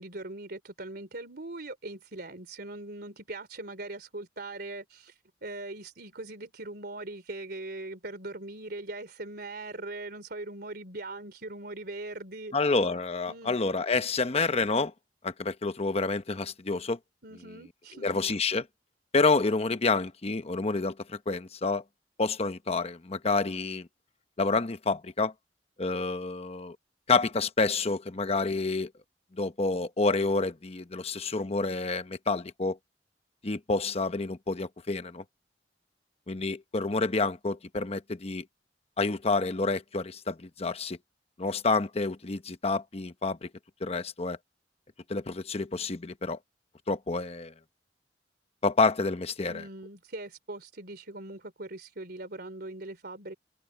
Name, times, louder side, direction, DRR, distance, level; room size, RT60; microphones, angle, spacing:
voice 1, 0.0-5.1 5.4-12.5 13.3-13.6 17.2-18.2 49.5-53.3, right 2 dB, 60° right, 3.7 m, -40 dB
voice 2, 12.5-14.9 15.2-17.0 18.0-18.6 19.1-21.8 22.2-23.9 24.4-25.3 25.8-26.8 27.1-28.9 29.3-32.8 33.4-35.2 36.3-38.5 39.0-41.0 41.4-43.5 43.8-44.4 45.1-46.4 46.9-47.5 48.6-49.6, left 3 dB, 35° left, 0.9 m, -28 dB
head